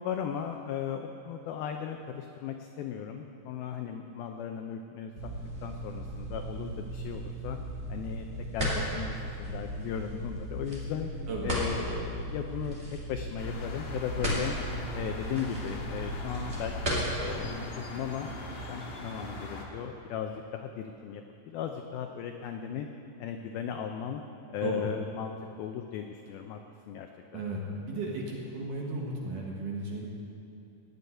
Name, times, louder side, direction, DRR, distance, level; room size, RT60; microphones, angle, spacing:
voice 1, 0.0-5.3 5.6-7.6 7.9-8.3 8.5-11.1 11.4-14.6 14.9-22.9 23.2-24.2 24.5-25.3 25.6-26.6 26.9-27.4, left 8 dB, 85° left, 5 dB, 2.1 m, -37 dB
sound 1, 5.2-17.5, right 1 dB, 20° right, 2.2 m, -35 dB
sound 2, 13.4-19.7, left 1 dB, 50° left, 1.9 m, -41 dB
voice 2, 27.3-30.1, right 2 dB, 60° right, -2 dB, 2.5 m, -35 dB
17.0 x 7.0 x 9.7 m, 2.8 s
omnidirectional pair, 5.1 m